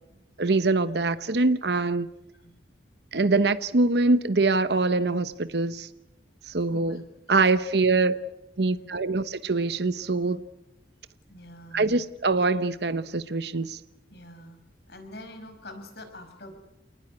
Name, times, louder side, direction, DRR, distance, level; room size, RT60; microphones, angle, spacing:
voice 1, 0.4-2.1 3.1-5.9 6.5-7.0 7.3-8.1 8.6-10.4 11.7-13.8, right 3 dB, 65° right, 0.9 m, -24 dB
voice 2, 6.7-7.0 7.3-7.6 7.9-8.1 8.6-9.2 11.3-12.0 14.1-14.6 14.9-16.5, left 1 dB, 60° left, 5.3 m, -46 dB
29.0 x 19.0 x 9.7 m
head